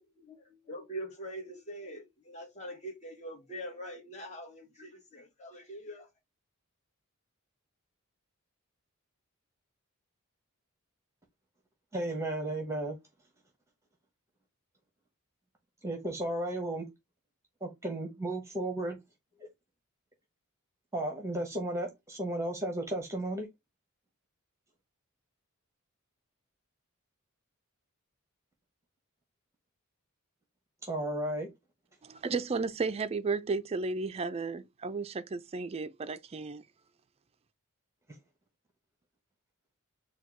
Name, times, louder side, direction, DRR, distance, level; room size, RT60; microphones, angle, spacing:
voice 1, 0.0-6.1, equal, 30° left, 1.2 m, -43 dB
voice 2, 11.9-13.0 15.8-16.8 17.6-19.0 20.9-23.5 30.8-31.5, right 1 dB, 15° right, 0.9 m, -34 dB
voice 3, 32.0-36.6, right 4 dB, 30° right, 0.4 m, -33 dB
4.3 x 2.3 x 4.4 m
head